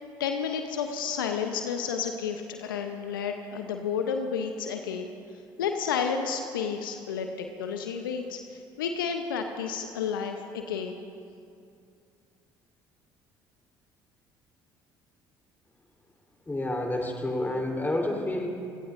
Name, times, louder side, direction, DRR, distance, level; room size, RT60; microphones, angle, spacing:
voice 1, 0.2-5.1 5.6-11.0, left 6 dB, 80° left, 5 dB, 0.8 m, -31 dB
voice 2, 16.5-18.5, left 1 dB, 15° left, 0 dB, 3.5 m, -29 dB
28.5 x 17.0 x 2.6 m, 2.4 s
hypercardioid pair, 55°, 11 cm